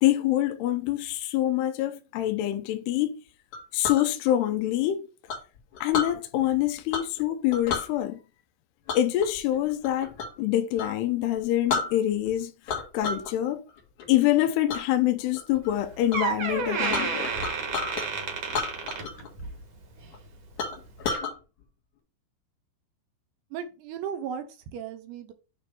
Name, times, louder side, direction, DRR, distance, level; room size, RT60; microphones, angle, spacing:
voice 1, 0.0-3.2 3.7-5.0 5.8-8.2 9.0-10.1 10.4-12.5 12.9-13.6 14.1-17.3, left 13 dB, 80° left, 2.5 m, -25 dB
Chink clink, 3.5-4.1 5.3-6.1 6.9-7.2 7.5-7.9 8.9-10.4 10.7-10.9 11.4-11.5 11.7-12.3 12.7-13.3 13.7-14.1 14.7-14.8 15.3-15.7 16.1-16.2 16.5-18.1 18.5-19.3 19.5-19.6 20.1-20.2 20.6-21.3, left 5 dB, 55° left, 2.5 m, -32 dB
Door, 15.7-15.8 16.1-19.6 20.0-20.3 21.0-21.1, right 5 dB, 55° right, 1.8 m, -30 dB
voice 2, 23.5-25.3, right 8 dB, 75° right, 2.7 m, -36 dB
9.2 x 3.1 x 5.5 m
omnidirectional pair, 5.3 m